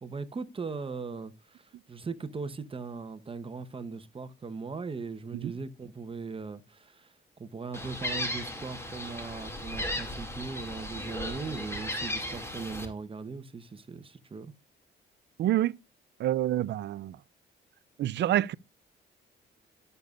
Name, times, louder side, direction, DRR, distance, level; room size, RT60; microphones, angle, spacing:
voice 1, 0.0-14.5, right 4 dB, 25° right, 1.0 m, -39 dB
Gull seagull, 7.7-12.9, left 1 dB, 15° left, 2.2 m, -36 dB
voice 2, 15.4-15.7 16.2-17.2 18.0-18.5, right 13 dB, 60° right, 0.4 m, -27 dB
13.0 x 6.8 x 2.4 m
cardioid pair, 90°, 20 cm